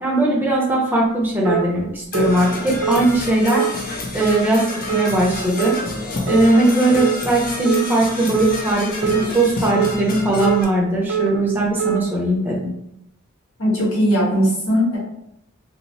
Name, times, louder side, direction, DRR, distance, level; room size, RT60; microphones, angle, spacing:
voice 1, 0.0-3.6 4.1-5.7 6.2-12.7, right 1 dB, 10° right, -4 dB, 0.6 m, -19 dB
sound 1, 1.5-1.7 2.1-2.3 2.8-3.0 3.5-3.7 4.2-4.4 4.9-5.1 5.6-5.8 6.3-6.5 7.0-7.2 7.7-7.9 8.3-8.6 9.0-9.2 9.7-9.9 10.4-10.6 11.1-11.3 11.8-12.0, right 9 dB, 80° right, 0.4 m, -22 dB
Percussion / Brass instrument, 2.1-10.6, left 2 dB, 40° left, 0.4 m, -29 dB
voice 2, 13.6-15.0, equal, 85° left, -5 dB, 1.1 m, -18 dB
3.1 x 2.0 x 2.6 m, 0.79 s
head